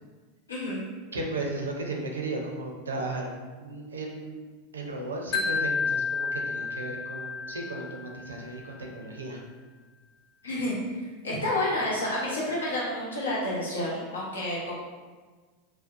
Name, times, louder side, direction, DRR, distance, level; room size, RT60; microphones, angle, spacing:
voice 1, 0.5-0.8 10.4-14.8, left 1 dB, 85° left, -6 dB, 0.8 m, -30 dB
voice 2, 1.1-4.4 4.7-9.4, right 2 dB, 85° right, 1 dB, 0.4 m, -35 dB
Wind chime, 5.3-8.4, left 5 dB, 40° left, 0.3 m, -30 dB
2.5 x 2.1 x 2.4 m, 1.4 s
hypercardioid pair, 90°, 0 cm